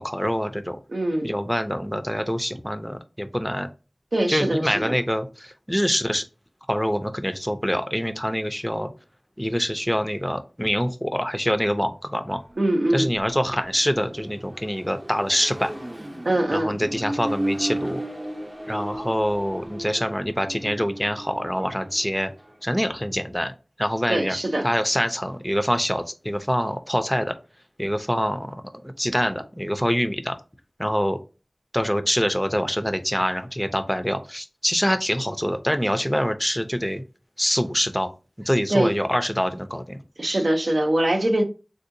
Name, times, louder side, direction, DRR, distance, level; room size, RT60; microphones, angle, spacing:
voice 1, 0.0-0.8 1.2-3.7 4.3-6.2 6.7-8.9 9.4-12.4 12.9-15.7 16.5-18.0 18.7-22.3 22.6-23.5 23.8-24.4 24.6-27.3 27.8-30.3 30.8-31.2 31.7-37.0 37.4-38.1 38.5-40.0, equal, 5° left, 0.4 m, -25 dB
voice 2, 0.9-1.3 4.1-4.9 12.6-13.1 16.2-16.8 24.1-24.7 38.7-39.0 40.2-41.4, right 1 dB, 85° right, 0.6 m, -23 dB
Accelerating revving vroom, 12.2-22.6, right 1 dB, 35° right, 0.7 m, -35 dB
3.7 x 2.7 x 2.6 m
wide cardioid pair, 45°, 0 cm